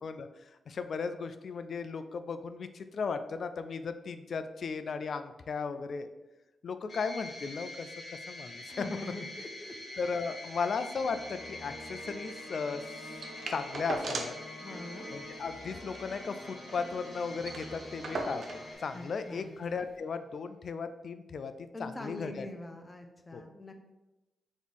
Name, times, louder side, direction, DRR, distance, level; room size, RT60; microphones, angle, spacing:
voice 1, 0.7-6.1 6.6-7.9 8.3-9.1 10.0-12.8 13.5-14.3 15.1-22.5 23.3-23.4, left 5 dB, 65° left, 10 dB, 0.3 m, -36 dB
sound 1, 6.9-19.7, left 2 dB, 50° left, 1.0 m, -46 dB
voice 2, 8.5-10.0 14.6-15.1 18.9-19.5 21.7-23.7, left 1 dB, 25° left, 5 dB, 0.6 m, -44 dB
sound 2, 11.0-18.7, equal, ahead, 1.2 m, -47 dB
sound 3, 13.2-14.5 14.8-14.9 15.2-15.4 15.8-16.9 17.1-17.2 17.4-18.7 19.6-19.7, right 2 dB, 60° right, 0.6 m, -38 dB
3.6 x 3.0 x 4.0 m, 1.0 s
cardioid pair, 55°, 0 cm